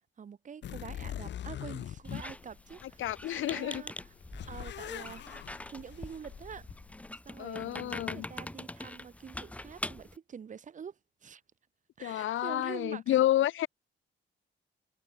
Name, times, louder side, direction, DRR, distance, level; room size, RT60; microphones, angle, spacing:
voice 1, 0.2-4.1 4.5-5.3 5.7-6.7 7.2-11.4 12.0-13.2, right 7 dB, 40° right, 1.3 m, -46 dB
sound 1, 0.6-3.4 3.8-7.1, left 11 dB, 65° left, 1.0 m, -43 dB
Squeak, 2.0-10.2, left 1 dB, 5° left, 0.9 m, -44 dB
voice 2, 3.0-3.8 7.4-8.3 12.0-13.7, left 13 dB, 85° left, 0.8 m, -30 dB
wide cardioid pair, 155°, 20 cm